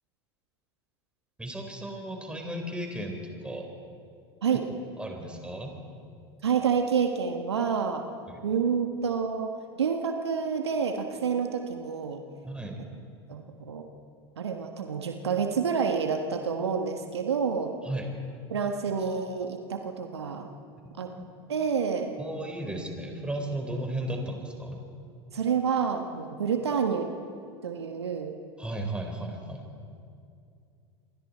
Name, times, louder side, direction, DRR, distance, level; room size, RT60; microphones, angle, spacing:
voice 1, 1.4-3.7 5.0-5.8 8.3-8.4 12.4-12.8 17.9-18.1 21.0-21.2 22.2-24.8 28.6-29.6, right 1 dB, 5° right, 2 dB, 4.6 m, -35 dB
voice 2, 6.4-8.0 8.4-9.5 9.8-12.2 13.3-13.9 14.4-17.7 18.5-20.5 21.0-21.1 21.5-22.1 25.3-27.1 27.6-28.4, right 6 dB, 80° right, 5 dB, 1.5 m, -28 dB
28.0 x 22.5 x 4.5 m, 2.5 s
figure-of-eight pair, 80°, 14 cm